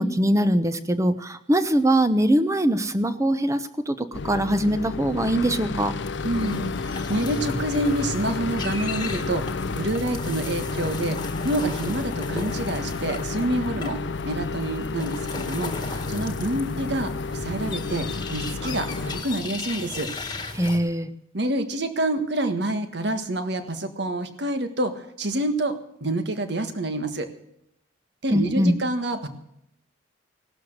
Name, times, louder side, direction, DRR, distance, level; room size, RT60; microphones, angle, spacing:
voice 1, 0.0-5.9 20.5-21.1 28.3-28.8, right 1 dB, 15° right, 12 dB, 0.8 m, -22 dB
sound 1, 4.1-19.2, left 4 dB, 65° left, 0.6 m, -31 dB
sound 2, 5.7-20.8, left 3 dB, 20° left, 1.7 m, -36 dB
voice 2, 6.2-14.0 14.2-20.1 21.3-27.3 28.2-29.3, right 1 dB, 60° right, 9 dB, 1.6 m, -27 dB
17.0 x 12.0 x 6.6 m, 0.78 s
head